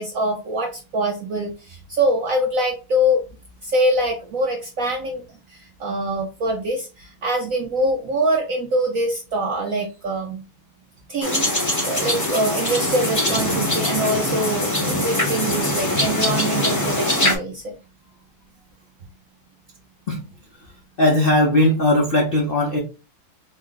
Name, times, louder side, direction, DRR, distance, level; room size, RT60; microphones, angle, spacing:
voice 1, 0.0-3.2 3.6-5.2 5.5-10.4 11.1-17.7, right 1 dB, 70° right, 1 dB, 0.8 m, -24 dB
sound 1, 11.2-17.4, left 1 dB, 25° left, 0.4 m, -22 dB
voice 2, 21.0-22.8, left 1 dB, 80° left, -1 dB, 0.5 m, -18 dB
4.2 x 2.1 x 3.8 m, 0.30 s
omnidirectional pair, 2.2 m